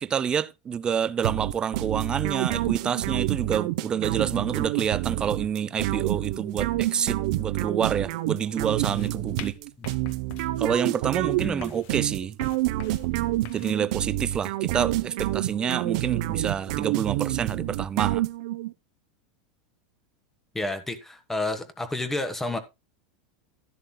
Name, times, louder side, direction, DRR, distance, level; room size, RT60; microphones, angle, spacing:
voice 1, 0.0-9.6 10.6-12.4 13.5-18.2, right 8 dB, 20° right, 0.6 m, -28 dB
sound 1, 1.2-18.7, right 16 dB, 60° right, 0.9 m, -28 dB
sound 2, 8.8-13.8, left 10 dB, 50° left, 1.2 m, -45 dB
voice 2, 11.4-11.8 20.5-22.6, left 2 dB, 5° left, 1.4 m, -30 dB
12.5 x 11.5 x 2.3 m
supercardioid pair, 155°, 4 cm